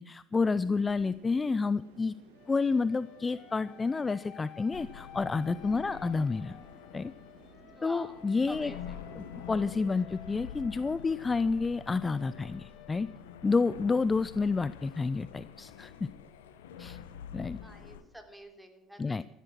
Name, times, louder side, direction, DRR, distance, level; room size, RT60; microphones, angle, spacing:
voice 1, 0.0-2.1 2.5-6.6 6.9-7.1 7.8-8.7 9.2-13.1 13.4-16.1 16.8-17.0 17.3-17.6 19.0-19.2, left 4 dB, 25° left, 17 dB, 0.5 m, -29 dB
sound 1, 0.5-9.5, right 2 dB, 80° right, 5.4 m, -58 dB
sound 2, 2.3-14.1, left 8 dB, 50° left, 1.6 m, -54 dB
sound 3, 4.7-18.0, left 9 dB, 80° left, 1.3 m, -47 dB
voice 2, 5.6-5.9 7.7-9.0 9.9-10.0 17.6-19.2, equal, 5° right, 5 dB, 3.5 m, -49 dB
15.0 x 12.5 x 6.1 m, 0.97 s
hypercardioid pair, 70°, 0 cm